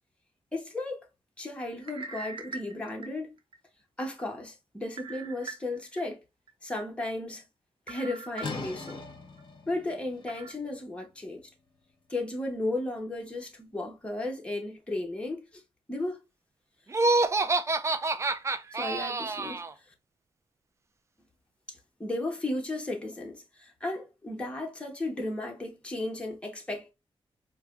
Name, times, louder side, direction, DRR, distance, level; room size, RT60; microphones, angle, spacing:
voice 1, 0.5-1.1 1.4-3.3 4.0-6.2 6.6-7.4 7.9-9.0 9.7-11.5 12.1-15.6 15.9-16.2 18.7-19.6 21.7-26.9, left 2 dB, 10° left, 1.0 m, -34 dB
sound 1, 1.8-3.6 4.0-4.1 5.0-6.0 6.5-6.6 7.9-8.9 9.4-9.5 10.3-10.5, right 4 dB, 55° right, 0.9 m, -42 dB
sound 2, 8.4-14.0, left 3 dB, 50° left, 0.9 m, -44 dB
Laughter, 16.9-19.7, right 3 dB, 30° right, 0.4 m, -27 dB
4.5 x 2.2 x 2.4 m
wide cardioid pair, 110°, 10 cm